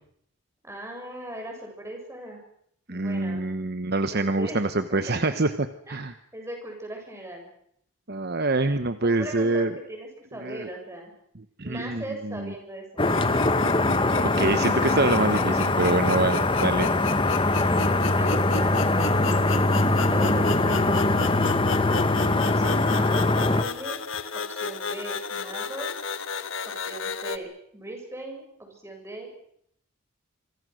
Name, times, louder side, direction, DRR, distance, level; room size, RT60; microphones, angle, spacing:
voice 1, 0.6-2.4 2.9-3.5 4.1-4.6 4.9-5.4 5.9-7.5 8.9-11.1 11.6-13.1 17.7-21.7 22.4-23.2 23.6-24.0 24.3-26.0 26.7-29.4, right 1 dB, 10° right, 2 dB, 7.3 m, -39 dB
voice 2, 2.9-5.5 5.9-6.1 8.1-9.7 10.4-10.7 11.6-12.5 14.2-16.9, right 2 dB, 45° right, 10 dB, 1.0 m, -25 dB
sound 1, 13.0-27.4, left 5 dB, 60° left, 1.4 m, -34 dB
sound 2, 13.0-23.6, left 2 dB, 25° left, 1.2 m, -22 dB
26.5 x 25.0 x 6.4 m, 0.70 s
head